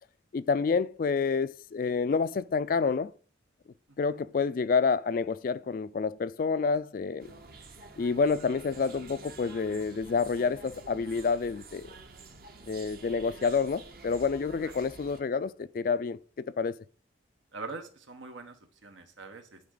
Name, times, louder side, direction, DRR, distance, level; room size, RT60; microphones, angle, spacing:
voice 1, 0.3-3.1 4.0-7.3 8.0-11.9 12.6-16.7, left 5 dB, 45° left, 0.3 m, -28 dB
sound 1, 7.2-15.2, right 3 dB, 50° right, 0.8 m, -49 dB
voice 2, 17.5-19.6, right 3 dB, 85° right, 1.2 m, -43 dB
9.2 x 3.9 x 3.9 m
head